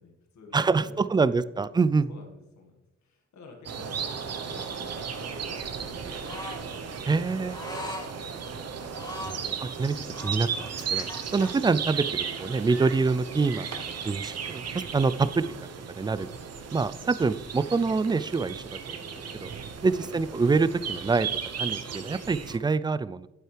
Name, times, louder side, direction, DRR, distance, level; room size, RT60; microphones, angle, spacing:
voice 1, 0.0-1.7 2.1-6.5 7.8-8.7 11.6-11.7 19.9-20.2, left 3 dB, 70° left, 2 dB, 1.7 m, -51 dB
voice 2, 0.5-2.1 7.1-7.6 9.3-14.6 14.9-15.5 15.9-16.3 16.7-19.0 19.3-19.5 19.8-21.3 21.6-23.3, right 4 dB, 15° right, 15 dB, 0.3 m, -26 dB
sound 1, 3.7-22.6, right 6 dB, 60° right, 0.9 m, -35 dB
sound 2, 6.2-6.6 7.5-8.1 8.9-9.4 10.1-11.5, left 1 dB, 15° left, 2.5 m, -39 dB
9.3 x 7.8 x 3.3 m, 0.98 s
cardioid pair, 65°, 29 cm